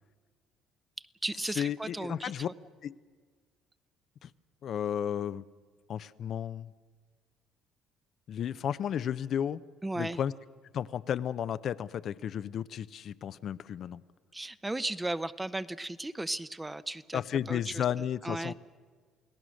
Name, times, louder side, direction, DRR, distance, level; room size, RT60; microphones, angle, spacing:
voice 1, 1.0-2.5 9.8-10.2 14.3-17.2 17.5-17.8 18.2-18.5, right 2 dB, 10° right, 15 dB, 0.7 m, -35 dB
voice 2, 1.6-2.5 2.8-2.9 4.2-4.3 4.6-5.4 5.9-6.7 8.3-9.6 10.0-10.3 10.7-14.0 17.1-18.5, left 9 dB, 55° left, 14 dB, 0.6 m, -33 dB
28.5 x 18.0 x 6.4 m, 1.5 s
supercardioid pair, 90°, 0 cm